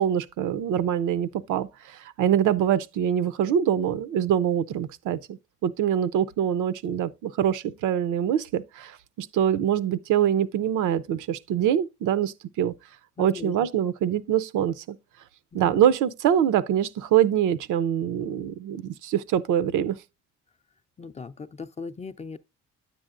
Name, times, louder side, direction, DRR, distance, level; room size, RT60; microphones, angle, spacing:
voice 1, 0.0-12.7 13.2-15.0 15.5-20.0, right 9 dB, 80° right, 0.6 m, -24 dB
voice 2, 13.2-13.5 15.6-15.8 21.0-22.4, left 4 dB, 25° left, 0.4 m, -38 dB
9.7 x 7.8 x 2.5 m
cardioid pair, 90°, 30 cm